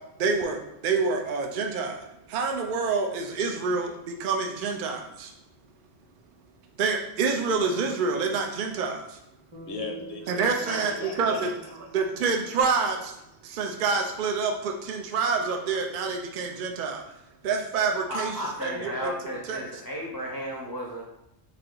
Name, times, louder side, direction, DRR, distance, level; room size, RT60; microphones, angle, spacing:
voice 1, 0.2-5.3 6.8-9.2 10.3-11.5 11.9-13.1 13.4-17.0 17.4-18.3 18.6-19.1 19.5-19.6, right 4 dB, 60° right, 3 dB, 0.5 m, -27 dB
Bass guitar, 9.5-13.9, right 6 dB, 25° right, 0.8 m, -48 dB
voice 2, 9.6-11.9, left 4 dB, 65° left, 1 dB, 0.9 m, -38 dB
voice 3, 18.1-21.0, equal, 25° left, -4 dB, 0.5 m, -34 dB
3.4 x 2.8 x 3.8 m, 0.87 s
omnidirectional pair, 1.3 m